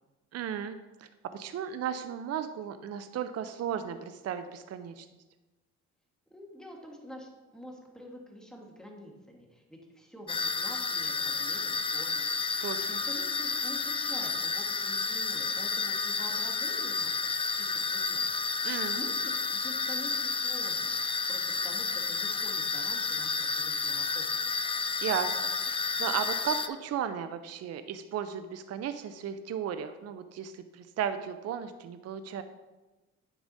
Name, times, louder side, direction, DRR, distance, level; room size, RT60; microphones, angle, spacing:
voice 1, 0.3-5.1 12.6-13.0 18.6-19.0 25.0-32.4, right 8 dB, 55° right, 10 dB, 0.5 m, -35 dB
voice 2, 6.3-12.2 12.5-17.3 17.6-18.3 18.9-24.2, equal, ahead, -1 dB, 1.6 m, -47 dB
sound 1, 10.3-26.7, left 4 dB, 20° left, 0.4 m, -31 dB
9.8 x 4.7 x 4.0 m, 1.1 s
cardioid pair, 90°, 30 cm